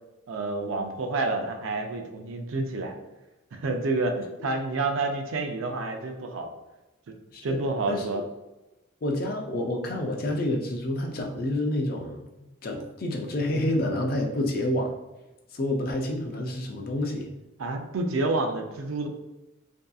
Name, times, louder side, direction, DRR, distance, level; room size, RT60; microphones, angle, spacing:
voice 1, 0.3-3.0 3.5-6.5 7.4-8.2 17.6-19.1, right 2 dB, 80° right, 4 dB, 0.4 m, -29 dB
voice 2, 7.9-8.2 9.0-12.2 12.6-15.0 15.5-17.3, left 1 dB, 45° left, 2 dB, 0.4 m, -28 dB
2.6 x 2.3 x 2.3 m, 1.0 s
head